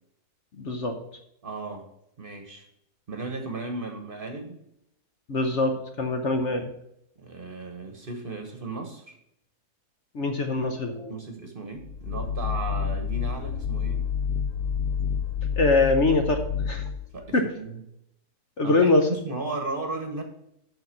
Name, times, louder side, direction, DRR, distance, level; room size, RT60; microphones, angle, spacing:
voice 1, 0.6-1.0 5.3-6.7 10.1-11.2 15.6-16.9 17.3-17.5 18.6-19.1, left 2 dB, 50° left, 5 dB, 1.1 m, -23 dB
voice 2, 1.4-1.9 2.2-2.7 3.1-4.6 7.2-9.2 11.1-14.1 17.1-17.8 18.6-20.2, right 3 dB, 35° right, 5 dB, 1.2 m, -35 dB
sound 1, 11.8-17.2, left 7 dB, 70° left, 0.5 m, -29 dB
7.7 x 5.7 x 5.8 m, 0.78 s
omnidirectional pair, 1.7 m